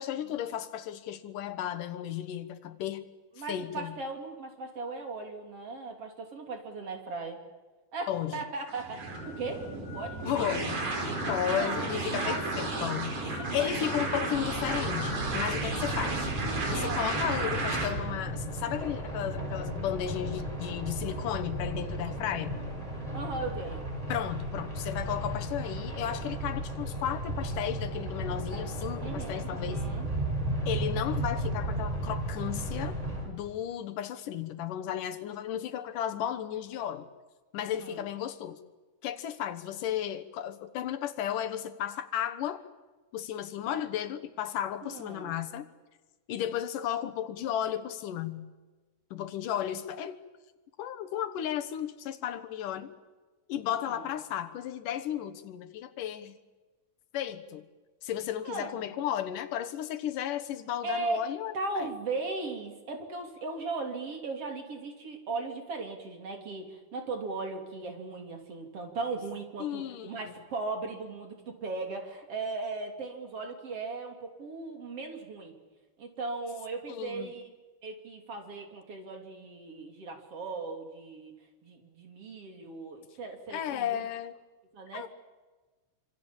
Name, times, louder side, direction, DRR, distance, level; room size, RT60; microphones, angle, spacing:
voice 1, 0.0-3.1 3.5-4.0 8.1-8.4 10.3-10.8 11.3-16.3 16.7-22.6 24.1-29.8 30.7-33.0 33.3-37.1 37.5-38.6 39.0-42.6 43.1-45.7 46.3-48.5 49.1-50.2 50.8-52.9 53.5-56.4 57.1-57.7 58.0-61.9 69.6-70.3 76.9-77.3 83.5-84.4 84.9-85.1, left 10 dB, 85° left, 9 dB, 2.9 m, -34 dB
voice 2, 3.4-7.4 7.9-10.2 11.5-11.9 12.2-12.9 13.5-13.7 14.1-14.2 16.7-17.1 23.1-23.9 29.0-30.1 37.7-38.1 44.8-45.3 53.7-54.1 58.4-58.9 60.8-75.5 76.0-77.5 77.8-81.3 81.6-84.1 84.7-85.1, right 3 dB, 50° right, 3 dB, 3.9 m, -38 dB
sound 1, 8.7-17.9, right 2 dB, 70° right, 5.9 m, -33 dB
sound 2, 14.3-33.2, right 1 dB, 10° right, 6.0 m, -34 dB
27.0 x 26.0 x 7.3 m, 1.3 s
omnidirectional pair, 3.6 m